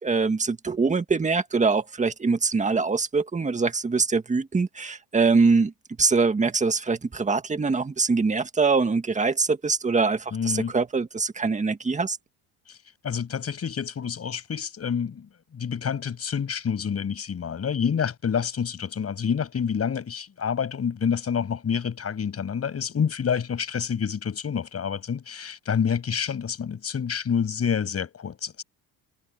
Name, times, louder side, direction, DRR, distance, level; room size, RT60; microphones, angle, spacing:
voice 1, 0.0-5.7 6.0-12.2, right 4 dB, 15° right, 1.8 m, -23 dB
voice 2, 10.3-10.7 12.7-12.8 13.0-28.6, left 7 dB, 35° left, 7.4 m, -28 dB
cardioid pair, 110°, 41 cm